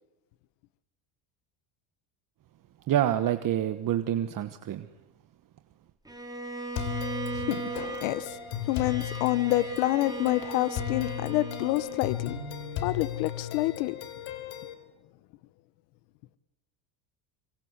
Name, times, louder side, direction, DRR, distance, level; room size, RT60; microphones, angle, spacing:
voice 1, 2.9-4.9, right 11 dB, 45° right, 1.2 m, -27 dB
Bowed string instrument, 6.1-12.3, right 4 dB, 10° right, 3.8 m, -38 dB
sound 1, 6.7-14.7, left 10 dB, 70° left, 3.6 m, -36 dB
voice 2, 7.3-8.4 8.6-12.4 12.8-14.0, left 17 dB, 90° left, 1.1 m, -28 dB
25.5 x 24.0 x 8.2 m
cardioid pair, 130°, 47 cm